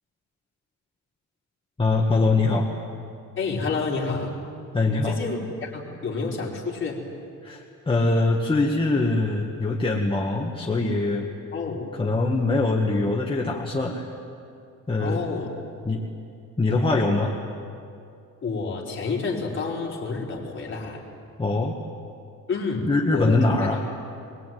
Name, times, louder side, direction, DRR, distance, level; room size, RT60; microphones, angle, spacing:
voice 1, 1.8-2.7 4.7-5.2 7.4-11.3 11.9-14.1 14.9-15.2 15.8-16.0 16.6-17.4 21.4-21.8 22.8-23.8, left 2 dB, 15° left, -2 dB, 1.8 m, -23 dB
voice 2, 3.4-4.4 5.0-7.0 11.5-11.9 15.0-15.5 18.4-21.0 22.5-23.4 23.9-24.0, left 4 dB, 35° left, -2 dB, 4.8 m, -29 dB
24.0 x 22.0 x 9.4 m, 2.5 s
cardioid pair, 140°, 32 cm